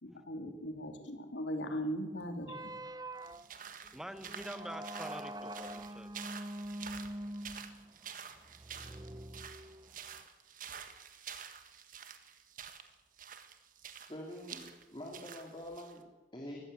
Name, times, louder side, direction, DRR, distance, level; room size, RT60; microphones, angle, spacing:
voice 1, 0.0-2.8, equal, 90° left, 6 dB, 2.8 m, -39 dB
sound 1, 2.4-10.2, right 1 dB, 20° right, 0.6 m, -45 dB
sound 2, 3.2-16.0, right 7 dB, 50° right, 1.6 m, -49 dB
voice 2, 3.9-6.1, equal, 5° right, 11 dB, 1.1 m, -45 dB
voice 3, 14.1-16.7, left 1 dB, 30° left, 0 dB, 2.7 m, -46 dB
20.5 x 15.0 x 8.8 m, 1.2 s
head